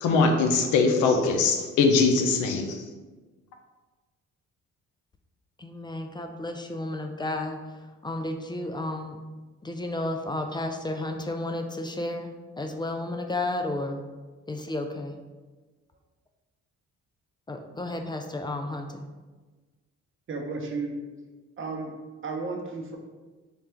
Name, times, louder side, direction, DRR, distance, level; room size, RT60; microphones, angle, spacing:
voice 1, 0.0-2.8, left 4 dB, 90° left, 4 dB, 0.6 m, -22 dB
voice 2, 5.6-9.2 9.6-12.3 12.6-14.0 14.5-15.2 17.5-19.0, left 2 dB, 15° left, 5 dB, 0.3 m, -32 dB
voice 3, 20.3-21.0 21.6-21.9 22.2-23.0, right 3 dB, 45° right, 1 dB, 0.7 m, -33 dB
3.4 x 2.4 x 4.3 m, 1.3 s
cardioid pair, 90°, 30 cm